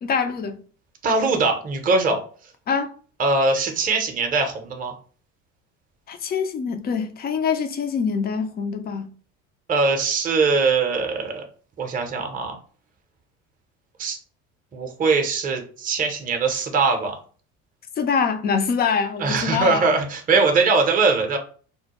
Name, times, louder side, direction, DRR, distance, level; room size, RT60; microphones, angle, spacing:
voice 1, 0.0-0.6 2.7-2.9 6.1-9.1 18.0-19.9, left 6 dB, 25° left, 0.3 m, -24 dB
voice 2, 1.0-2.2 3.2-4.9 9.7-11.4 11.8-12.6 14.0-14.2 14.7-17.2 19.2-21.4, right 4 dB, 20° right, 0.6 m, -21 dB
2.1 x 2.0 x 2.9 m
hypercardioid pair, 70°, 40 cm